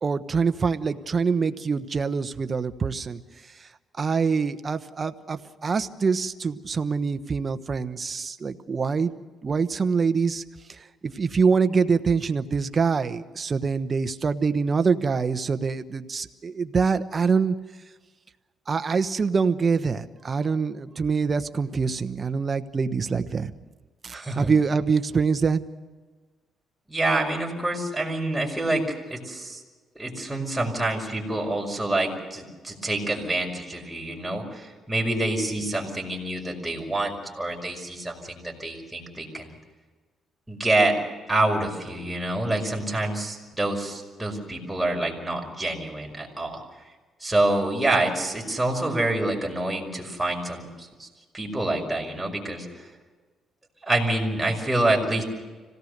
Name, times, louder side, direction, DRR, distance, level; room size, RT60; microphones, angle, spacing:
voice 1, 0.0-3.2 3.6-3.7 4.0-9.1 9.4-10.4 10.7-17.6 18.7-23.5 24.0-25.6, right 5 dB, 35° right, 10 dB, 1.1 m, -25 dB
voice 2, 24.1-24.5 26.9-28.8 29.1-29.6 30.0-39.5 40.5-41.0 41.3-46.6 47.2-51.1 51.3-52.9 53.9-55.2, right 2 dB, 10° right, 0 dB, 5.4 m, -27 dB
26.0 x 17.5 x 6.7 m, 1.4 s
cardioid pair, 110°, 0 cm